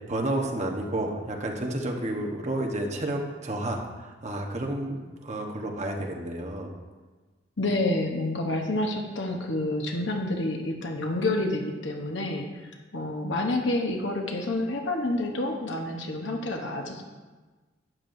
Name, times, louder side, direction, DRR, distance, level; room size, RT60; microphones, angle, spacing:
voice 1, 0.1-6.7, right 1 dB, 35° right, 1 dB, 1.1 m, -31 dB
voice 2, 7.6-17.0, left 2 dB, 65° left, 2 dB, 1.0 m, -28 dB
12.0 x 9.5 x 2.7 m, 1.3 s
head